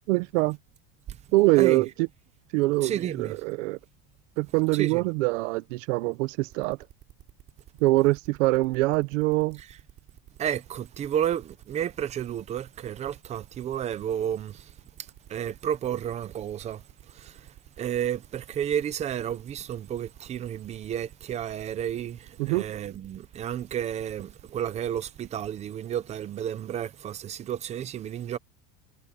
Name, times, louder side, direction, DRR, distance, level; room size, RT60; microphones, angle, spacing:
voice 1, 0.1-0.6 1.3-2.1 2.5-3.8 4.4-6.8 7.8-9.6 22.4-22.7, right 21 dB, 70° right, 1.0 m, -24 dB
voice 2, 2.8-3.3 4.7-5.0 10.4-14.7 15.3-28.4, right 10 dB, 15° right, 0.6 m, -32 dB
sound 1, 6.5-25.3, right 13 dB, 30° right, 5.1 m, -52 dB
cardioid pair, 180°, 39 cm